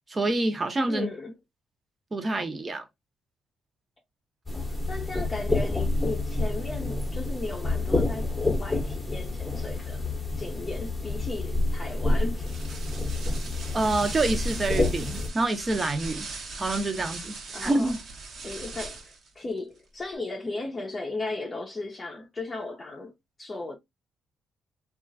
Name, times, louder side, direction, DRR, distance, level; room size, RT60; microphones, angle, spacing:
voice 1, 0.1-1.1 2.1-2.8 13.7-16.3 16.6-17.4 17.6-18.0, right 2 dB, 30° right, 0.8 m, -27 dB
voice 2, 0.9-1.3 4.5-10.0 10.4-12.5 17.5-17.9 18.4-23.1 23.4-23.8, left 2 dB, 30° left, 0.6 m, -36 dB
sound 1, 4.5-15.3, left 2 dB, 10° left, 0.9 m, -28 dB
sound 2, 12.4-19.3, right 3 dB, 60° right, 0.9 m, -39 dB
2.9 x 2.4 x 2.5 m
cardioid pair, 90°, 0 cm